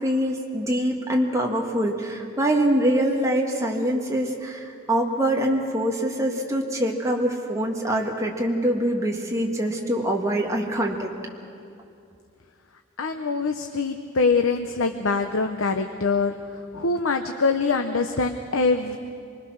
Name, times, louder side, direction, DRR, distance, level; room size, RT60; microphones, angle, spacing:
voice 1, 0.0-11.1, right 1 dB, 15° right, 0 dB, 2.0 m, -24 dB
voice 2, 13.0-16.3 16.7-19.0, left 4 dB, 85° left, 6 dB, 0.9 m, -24 dB
26.0 x 20.5 x 6.5 m, 2.5 s
head